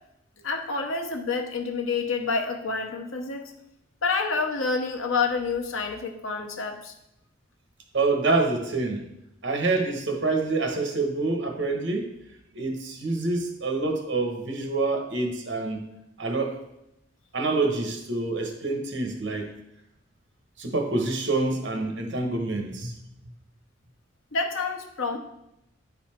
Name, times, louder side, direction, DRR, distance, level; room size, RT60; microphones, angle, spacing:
voice 1, 0.4-3.4 4.0-6.9 24.3-25.2, left 4 dB, 90° left, 4 dB, 0.9 m, -28 dB
voice 2, 7.9-9.0 9.4-12.1 12.5-15.8 16.2-16.5 17.3-19.5 20.6-22.9, right 3 dB, 65° right, 4 dB, 1.3 m, -26 dB
9.7 x 4.3 x 4.4 m, 0.84 s
head